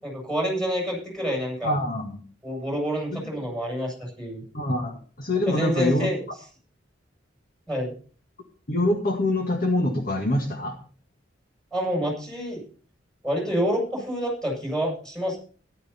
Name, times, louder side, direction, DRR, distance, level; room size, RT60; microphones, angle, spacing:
voice 1, 0.0-1.7 2.4-4.4 5.5-6.2 7.7-7.9 11.7-12.6 13.2-15.4, equal, 5° left, -1 dB, 7.6 m, -28 dB
voice 2, 1.6-2.2 3.1-3.5 4.5-4.9 5.2-6.1 8.7-10.8, left 1 dB, 50° left, 3 dB, 1.7 m, -25 dB
13.5 x 11.5 x 4.2 m, 0.41 s
head